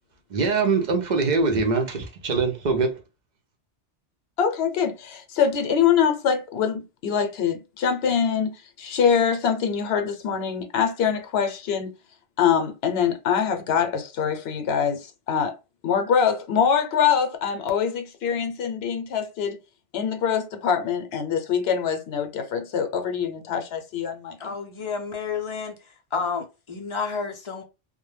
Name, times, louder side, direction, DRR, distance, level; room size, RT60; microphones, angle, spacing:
voice 1, 0.3-3.0, right 4 dB, 55° right, 0.6 m, -23 dB
voice 2, 4.4-11.9 12.4-15.5 15.8-19.6 19.9-24.4, left 7 dB, 70° left, 0.8 m, -24 dB
voice 3, 24.4-25.8 26.1-27.6, left 5 dB, 45° left, 0.4 m, -30 dB
2.2 x 2.1 x 3.1 m
omnidirectional pair, 1.1 m